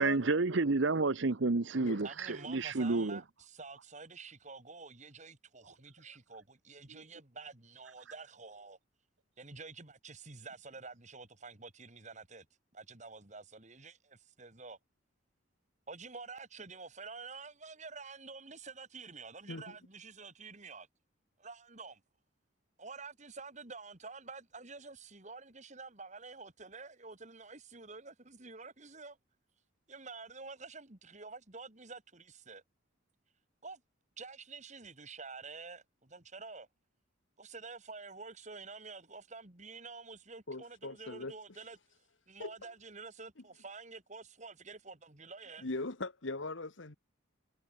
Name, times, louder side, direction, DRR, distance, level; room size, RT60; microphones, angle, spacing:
voice 1, 0.0-3.2 6.9-7.0, right 3 dB, 60° right, 0.8 m, -30 dB
voice 2, 2.0-8.8 9.4-12.5 12.7-14.8 15.9-20.9 21.4-22.0 22.8-29.2 29.9-32.6 33.6-33.8 34.2-36.7 37.4-41.8 42.3-45.7, right 4 dB, 35° right, 2.3 m, -49 dB
voice 3, 40.5-41.3 42.4-42.5 45.6-47.0, left 2 dB, 65° left, 1.5 m, -40 dB
head